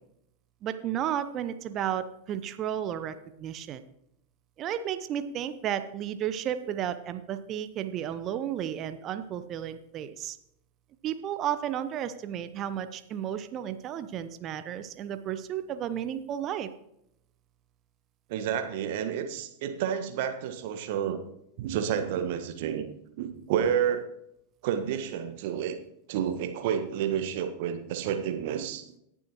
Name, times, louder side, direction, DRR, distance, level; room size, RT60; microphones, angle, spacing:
voice 1, 0.6-3.8 4.6-10.4 11.0-16.7, right 10 dB, 35° right, 11 dB, 0.7 m, -33 dB
voice 2, 18.3-21.2 21.6-22.9 23.2-24.0 24.6-25.7 26.1-29.0, right 8 dB, 50° right, 7 dB, 1.4 m, -30 dB
18.5 x 7.2 x 3.0 m, 0.76 s
figure-of-eight pair, 90°, 0 cm